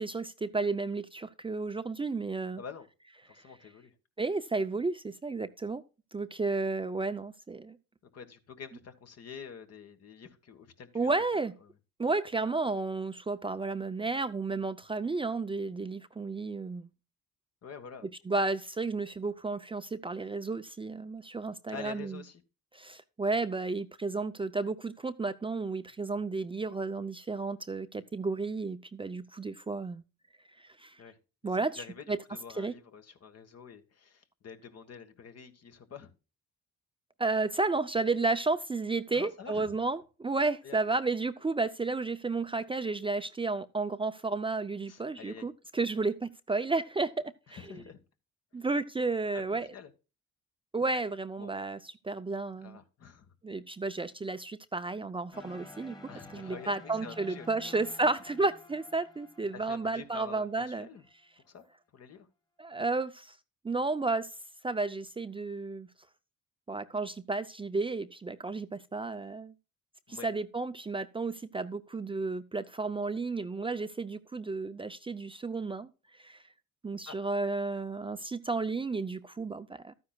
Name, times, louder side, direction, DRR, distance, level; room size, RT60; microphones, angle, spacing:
voice 1, 0.0-2.6 4.2-5.8 6.1-7.8 10.9-11.5 12.0-16.9 18.3-22.2 22.7-30.0 30.6-31.0 31.4-32.2 32.6-32.7 37.2-47.8 48.5-49.7 50.7-51.8 52.0-52.8 53.4-56.0 56.3-60.9 62.6-63.4 63.6-64.3 64.6-65.9 66.7-69.5 70.1-75.9 76.2-76.4 76.8-79.9, right 3 dB, 15° right, 0.5 m, -32 dB
voice 2, 2.6-2.9 3.3-3.9 8.1-11.1 11.6-11.7 17.6-18.1 21.7-22.4 31.0-31.2 31.5-36.1 39.1-39.8 40.6-40.9 44.9-45.5 47.5-48.0 49.5-49.9 51.4-51.5 52.6-53.3 56.1-57.8 59.5-61.0 61.4-61.6 61.9-62.3 70.1-70.3 77.0-77.2, left 6 dB, 55° left, 1.5 m, -47 dB
sound 1, 55.3-61.2, left 2 dB, 15° left, 1.6 m, -51 dB
12.5 x 9.7 x 2.3 m
cardioid pair, 90°, 30 cm